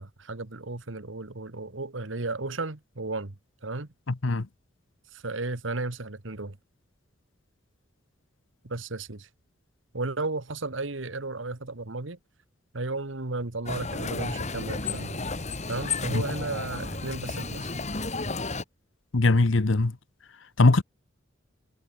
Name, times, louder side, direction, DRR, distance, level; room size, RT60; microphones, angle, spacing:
voice 1, 0.0-3.3 3.6-3.9 5.1-6.6 8.6-9.3 9.9-12.2 12.7-15.2 15.7-17.7, right 3 dB, 75° right, 1.6 m, -34 dB
sound 1, 13.7-18.6, left 3 dB, 35° left, 2.9 m, -32 dB
voice 2, 19.1-19.9 20.6-20.8, left 2 dB, 80° left, 1.0 m, -20 dB
head